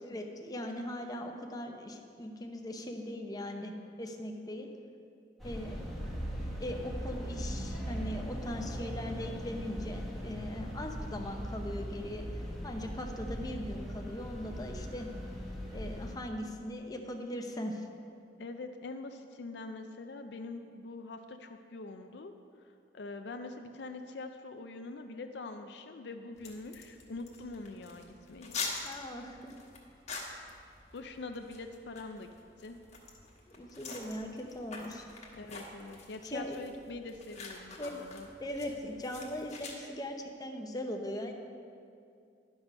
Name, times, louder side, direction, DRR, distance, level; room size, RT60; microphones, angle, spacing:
voice 1, 0.0-3.7 4.0-4.7 5.4-5.9 6.6-12.3 12.6-15.1 15.7-17.8 28.8-29.5 33.5-35.0 36.3-36.6 37.8-38.0 38.4-41.3, left 1 dB, 20° left, 3 dB, 0.7 m, -39 dB
sound 1, 5.4-16.1, equal, ahead, 1.4 m, -39 dB
voice 2, 18.4-22.3 22.9-28.6 30.9-32.8 35.3-38.3, left 3 dB, 65° left, 6 dB, 0.5 m, -44 dB
sound 2, 26.3-39.7, left 4 dB, 40° left, 1.3 m, -46 dB
11.0 x 6.1 x 5.4 m, 2.4 s
head